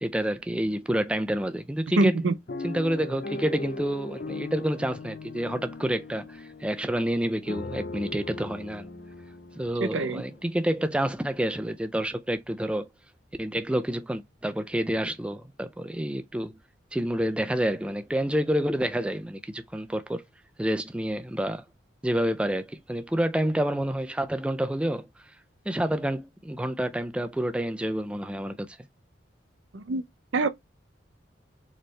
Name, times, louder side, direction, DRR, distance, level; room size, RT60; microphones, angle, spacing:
voice 1, 0.0-2.2 2.6-8.9 9.6-12.9 13.4-16.5 16.9-20.2 20.6-21.6 22.0-25.1 25.7-28.8, right 1 dB, 5° right, 0.3 m, -28 dB
voice 2, 2.0-2.3 9.8-10.2 29.7-30.0 30.3-30.5, right 2 dB, 90° right, 0.6 m, -24 dB
sound 1, 2.5-10.6 11.2-11.3 11.5-11.8, left 3 dB, 55° left, 0.6 m, -39 dB
4.3 x 3.2 x 3.2 m
head